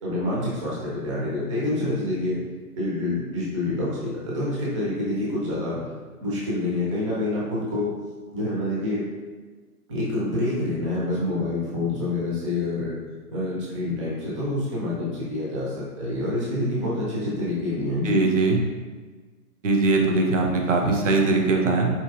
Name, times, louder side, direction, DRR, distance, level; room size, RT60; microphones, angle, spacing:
voice 1, 0.0-2.4 2.8-5.8 6.2-7.9 8.3-9.0 9.9-13.0 13.3-18.2, left 2 dB, 20° right, -7 dB, 0.6 m, -27 dB
voice 2, 18.0-18.6 19.6-21.9, right 3 dB, 55° right, 1 dB, 0.7 m, -21 dB
4.4 x 2.8 x 2.4 m, 1.4 s
figure-of-eight pair, 130°, 46 cm